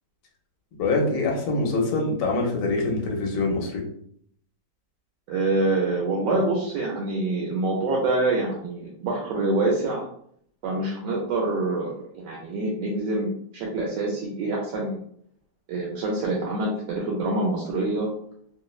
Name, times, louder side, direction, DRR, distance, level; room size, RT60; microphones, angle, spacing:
voice 1, 0.8-3.8, left 2 dB, 80° left, 0 dB, 1.3 m, -24 dB
voice 2, 5.3-10.0 10.6-15.0 15.7-18.1, right 2 dB, 80° right, -2 dB, 1.2 m, -26 dB
3.2 x 2.0 x 2.3 m, 0.65 s
omnidirectional pair, 1.9 m